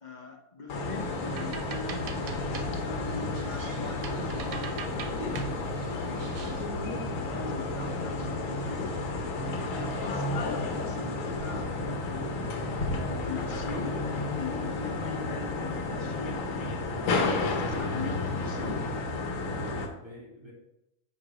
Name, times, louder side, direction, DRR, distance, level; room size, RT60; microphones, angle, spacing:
voice 1, 0.0-5.4 6.0-9.0 9.4-18.8, left 3 dB, 45° left, 2 dB, 0.6 m, -42 dB
sound 1, 0.7-19.9, left 2 dB, 70° left, 1.2 m, -32 dB
sound 2, 1.0-6.7, right 7 dB, 85° right, 1.1 m, -44 dB
voice 2, 18.2-19.0 19.4-20.5, right 1 dB, 20° right, -4 dB, 1.7 m, -48 dB
8.0 x 2.8 x 4.9 m, 0.87 s
omnidirectional pair, 1.5 m